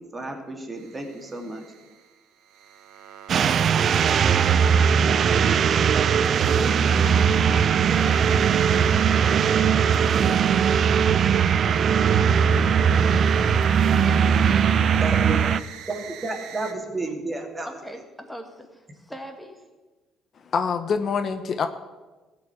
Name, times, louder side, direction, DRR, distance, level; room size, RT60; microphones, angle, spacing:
voice 1, 0.1-1.6 14.9-15.4 15.9-17.7, right 2 dB, 25° right, 2 dB, 2.6 m, -32 dB
sound 1, 0.8-16.7, right 8 dB, 75° right, 1.0 m, -45 dB
sound 2, 3.3-15.6, right 7 dB, 55° right, 0.5 m, -19 dB
voice 2, 6.4-8.4 17.7-19.7, equal, 5° left, 5 dB, 1.8 m, -39 dB
voice 3, 20.4-21.7, left 6 dB, 50° left, 9 dB, 0.8 m, -25 dB
15.0 x 5.2 x 8.3 m, 1.2 s
supercardioid pair, 70°, 0 cm